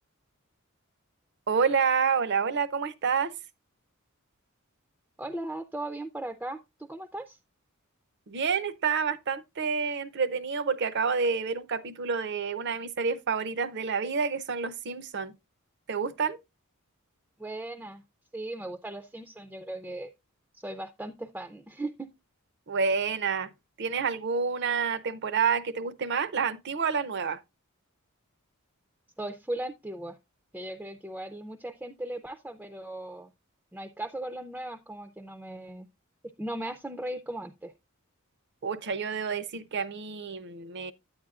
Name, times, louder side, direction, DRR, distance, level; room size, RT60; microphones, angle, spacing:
voice 1, 1.5-3.3 8.3-15.3 15.9-16.4 22.7-23.5 23.8-27.4 38.6-40.9, right 5 dB, 55° right, 0.6 m, -28 dB
voice 2, 5.2-7.4 17.4-18.0 18.3-20.1 20.5-22.1 29.2-30.2 30.5-33.3 33.7-35.9 36.4-37.7, right 1 dB, 5° right, 0.4 m, -37 dB
9.1 x 8.8 x 2.4 m
head